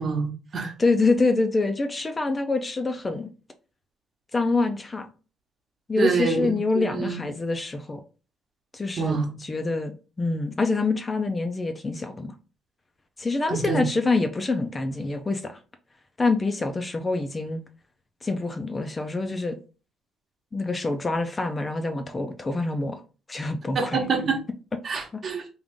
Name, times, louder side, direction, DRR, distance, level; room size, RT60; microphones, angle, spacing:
voice 1, 0.0-0.7 6.0-7.2 9.0-9.3 13.5-13.8 23.7-24.4 24.8-25.4, right 4 dB, 40° right, 1.0 m, -26 dB
voice 2, 0.8-3.3 4.3-5.1 5.9-8.0 8.7-12.3 13.2-15.5 16.2-17.6 18.2-19.6 20.5-23.0 23.3-24.0 25.1-25.2, left 3 dB, 20° left, 0.5 m, -26 dB
3.6 x 2.5 x 3.6 m
cardioid pair, 120°, 0 cm